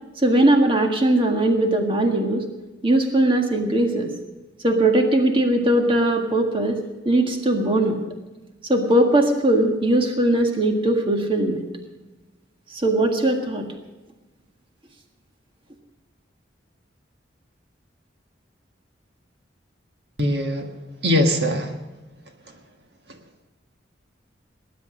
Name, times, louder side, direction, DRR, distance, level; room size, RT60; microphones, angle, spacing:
voice 1, 0.2-2.4 2.8-4.1 4.6-6.8 7.0-8.0 8.7-11.6 12.7-13.6, right 1 dB, 30° right, 3 dB, 1.7 m, -20 dB
voice 2, 20.2-20.7 21.0-21.8 22.5-22.6 23.1-23.2, left 1 dB, 60° right, 4 dB, 1.7 m, -22 dB
19.5 x 10.5 x 6.3 m, 1.1 s
head